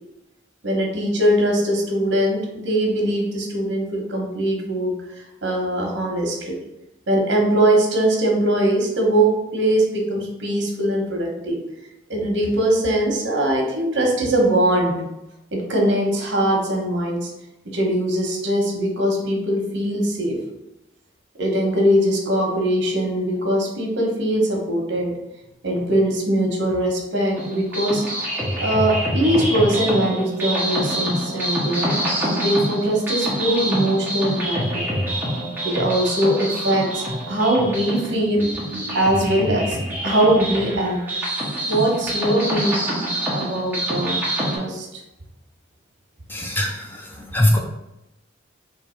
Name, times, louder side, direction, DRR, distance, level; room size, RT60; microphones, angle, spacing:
voice 1, 0.6-2.4 2.6-6.5 7.1-11.6 12.1-15.0 15.5-17.3 17.7-20.4 21.4-25.1 25.6-28.0 28.6-31.9 32.4-34.6 35.6-38.5 38.9-39.8 40.0-41.2 41.7-42.8 43.3-44.2 44.5-45.0, right 1 dB, 75° right, 0 dB, 1.1 m, -21 dB
sound 1, 27.4-44.6, right 1 dB, 10° right, 1.0 m, -26 dB
voice 2, 46.3-47.6, left 1 dB, 10° left, 0 dB, 0.4 m, -21 dB
3.4 x 2.8 x 4.4 m, 0.92 s
head